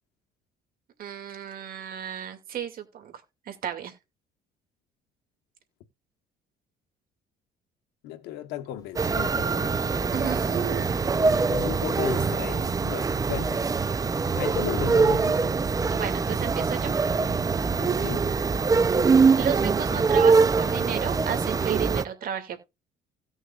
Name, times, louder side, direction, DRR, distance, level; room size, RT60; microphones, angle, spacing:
voice 1, 1.0-3.1 3.5-3.9 10.1-10.9 15.9-16.9 19.3-22.6, right 9 dB, 60° right, 2.4 m, -33 dB
voice 2, 8.0-10.2 11.5-13.7 14.3-15.7 17.7-18.3, left 11 dB, 90° left, 1.2 m, -35 dB
Walk footsteps, 8.8-21.6, left 3 dB, 20° left, 1.3 m, -47 dB
sound 1, 9.0-22.0, right 4 dB, 20° right, 0.6 m, -23 dB
17.0 x 6.4 x 2.5 m
cardioid pair, 110°, 17 cm